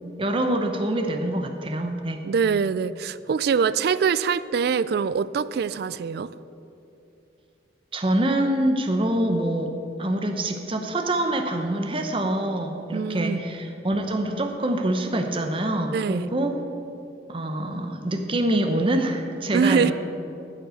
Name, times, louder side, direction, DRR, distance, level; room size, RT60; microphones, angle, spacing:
voice 1, 0.2-2.2 7.9-16.6 17.3-19.9, right 1 dB, 30° right, 5 dB, 0.8 m, -25 dB
voice 2, 2.2-6.3 12.9-13.4 15.9-16.3 19.5-19.9, right 6 dB, 60° right, 17 dB, 0.3 m, -24 dB
9.5 x 7.8 x 7.6 m, 2.8 s
head